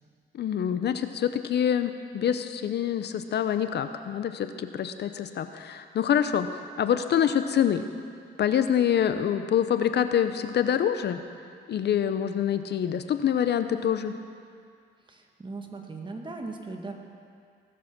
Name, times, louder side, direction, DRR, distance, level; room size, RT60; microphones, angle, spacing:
voice 1, 0.3-6.5 6.8-7.8 8.4-11.2 11.7-14.1, left 9 dB, 60° left, 9 dB, 0.7 m, -26 dB
voice 2, 15.0-16.9, right 3 dB, 25° right, 2 dB, 1.7 m, -38 dB
18.5 x 7.6 x 5.9 m, 2.2 s
cardioid pair, 90°, 20 cm